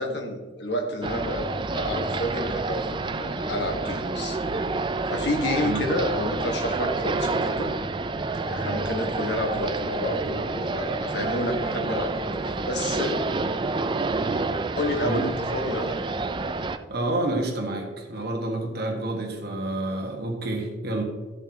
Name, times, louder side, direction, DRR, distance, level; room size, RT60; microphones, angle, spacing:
voice 1, 0.0-4.4 5.1-7.7 8.5-13.2 14.8-16.0, left 1 dB, 60° left, 2 dB, 1.5 m, -29 dB
sound 1, 1.0-16.8, right 3 dB, 25° right, 0.4 m, -29 dB
voice 2, 5.6-5.9 15.0-15.3 16.9-21.0, right 2 dB, 55° right, 1 dB, 1.5 m, -29 dB
12.0 x 7.0 x 2.9 m, 1.3 s
head